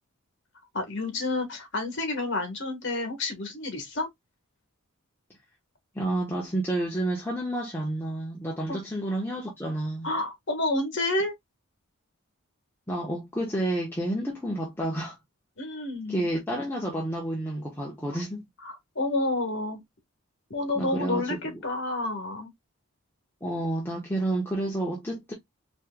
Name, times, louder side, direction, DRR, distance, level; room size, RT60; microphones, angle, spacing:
voice 1, 0.7-4.1 8.7-8.8 10.0-11.3 15.6-16.3 18.6-19.8 20.5-22.5, left 2 dB, 55° left, 1.4 m, -29 dB
voice 2, 5.9-10.1 12.9-15.2 16.1-18.4 20.7-21.6 23.4-25.3, right 1 dB, 10° left, 1.0 m, -30 dB
4.3 x 3.2 x 2.2 m
head